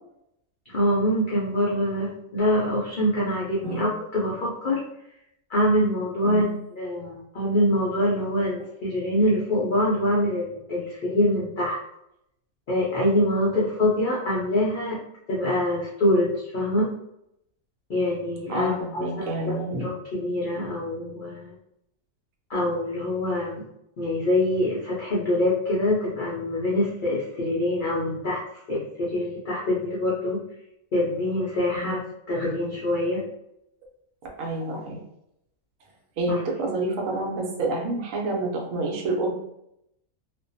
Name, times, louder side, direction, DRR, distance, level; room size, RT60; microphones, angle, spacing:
voice 1, 0.7-4.8 5.5-6.5 6.8-11.8 12.7-15.0 15.3-16.9 17.9-19.3 19.8-21.5 22.5-23.6 24.0-28.4 28.7-30.4 30.9-32.0 32.3-33.2 36.3-36.4, left 1 dB, 60° left, -6 dB, 0.5 m, -24 dB
voice 2, 6.2-6.5 18.5-19.9 31.7-32.0 34.4-35.0 36.2-39.3, right 2 dB, 75° right, 0 dB, 1.0 m, -28 dB
2.5 x 2.1 x 2.6 m, 0.80 s
omnidirectional pair, 1.5 m